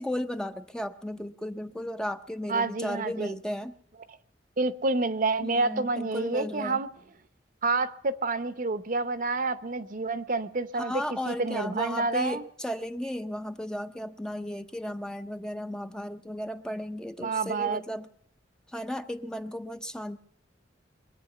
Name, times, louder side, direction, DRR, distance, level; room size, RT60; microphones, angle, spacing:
voice 1, 0.0-3.8 5.4-6.8 10.8-18.1 18.7-20.2, left 1 dB, 5° left, 0.6 m, -35 dB
voice 2, 2.5-3.3 4.6-6.9 7.6-10.9 11.3-12.4 17.2-17.8, right 3 dB, 50° right, 0.8 m, -28 dB
23.0 x 8.9 x 6.8 m
head